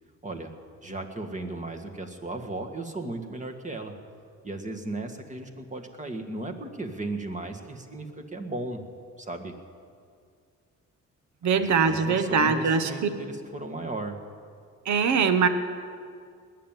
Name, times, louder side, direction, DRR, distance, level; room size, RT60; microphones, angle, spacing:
voice 1, 0.8-3.9 4.4-8.8 9.2-9.6 11.5-14.2, right 2 dB, 25° right, 4 dB, 1.8 m, -36 dB
voice 2, 11.4-12.9 14.8-15.5, right 5 dB, 70° right, 9 dB, 1.3 m, -22 dB
20.0 x 7.4 x 9.2 m, 2.2 s
cardioid pair, 90°, 30 cm